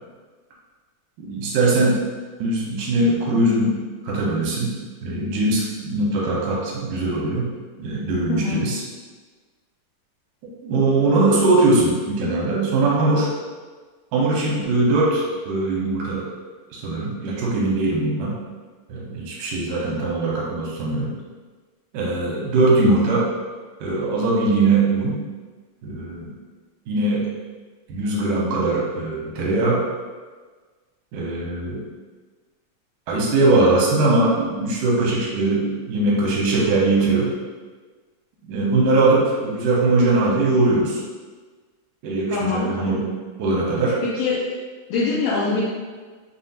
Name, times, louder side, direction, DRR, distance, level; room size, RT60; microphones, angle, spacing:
voice 1, 1.2-2.0 2.4-3.8 4.0-8.8 10.6-13.3 14.1-16.2 16.7-18.4 18.9-21.1 21.9-23.3 23.8-25.2 25.8-26.3 26.9-27.3 27.9-29.8 31.1-31.8 33.1-37.3 38.5-41.0 42.0-43.1 43.4-44.0, right 2 dB, 75° right, -4 dB, 2.3 m, -21 dB
voice 2, 8.3-8.6 42.3-42.7 44.0-44.6 44.9-45.6, left 4 dB, 85° left, -8 dB, 1.6 m, -23 dB
5.8 x 2.4 x 2.7 m, 1.4 s
omnidirectional pair, 4.0 m